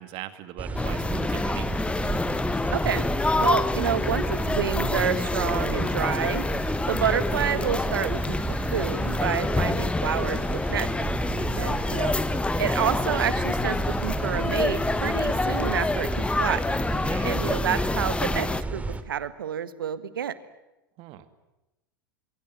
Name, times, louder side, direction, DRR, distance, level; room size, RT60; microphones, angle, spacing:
voice 1, 0.0-1.7 11.3-11.7 16.9-17.3 21.0-21.3, right 14 dB, 50° right, 11 dB, 2.4 m, -40 dB
sound 1, 0.6-19.0, right 3 dB, 10° right, 2.6 m, -32 dB
sound 2, 0.7-18.6, left 3 dB, 10° left, 0.9 m, -27 dB
voice 2, 2.7-3.1 3.4-6.4 6.9-11.1 11.6-12.1 12.6-16.7 17.2-20.4, right 9 dB, 80° right, 14 dB, 1.7 m, -29 dB
27.0 x 23.0 x 9.5 m, 0.98 s
hypercardioid pair, 90°, 11 cm